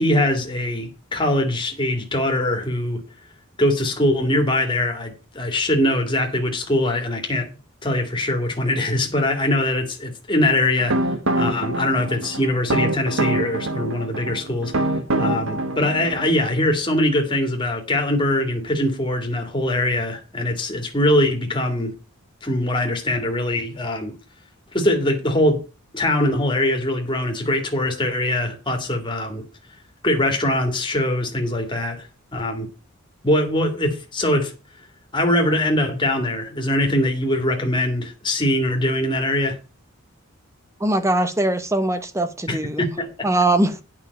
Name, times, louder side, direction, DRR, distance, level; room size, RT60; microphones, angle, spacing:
voice 1, 0.0-3.0 3.6-7.5 7.8-11.0 11.4-14.7 15.2-21.9 22.4-24.1 24.7-25.6 25.9-29.5 30.0-32.7 33.2-34.5 35.1-39.6 42.5-43.3, left 1 dB, 20° left, 2.2 m, -22 dB
sound 1, 10.5-16.3, right 1 dB, 65° right, 1.3 m, -25 dB
voice 2, 40.8-42.8 43.2-43.8, right 2 dB, 15° right, 1.0 m, -21 dB
9.1 x 5.6 x 7.1 m
head